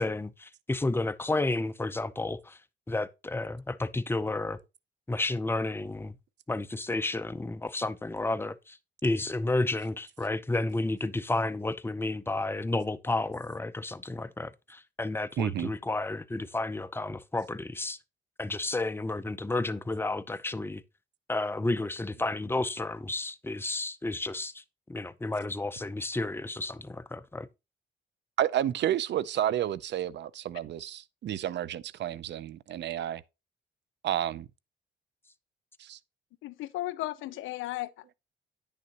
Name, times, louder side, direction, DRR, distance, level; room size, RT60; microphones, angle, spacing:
voice 1, 0.0-2.6 2.9-4.6 5.1-6.1 6.5-8.8 9.0-18.0 18.4-20.8 21.3-24.5 24.9-27.5, left 2 dB, 10° left, 0.6 m, -31 dB
voice 2, 15.4-15.7 28.4-33.2 34.0-34.5 35.8-36.0, right 11 dB, 60° right, 0.5 m, -31 dB
voice 3, 36.4-38.1, left 16 dB, 85° left, 0.5 m, -35 dB
9.8 x 6.6 x 2.9 m
cardioid pair, 90°, 20 cm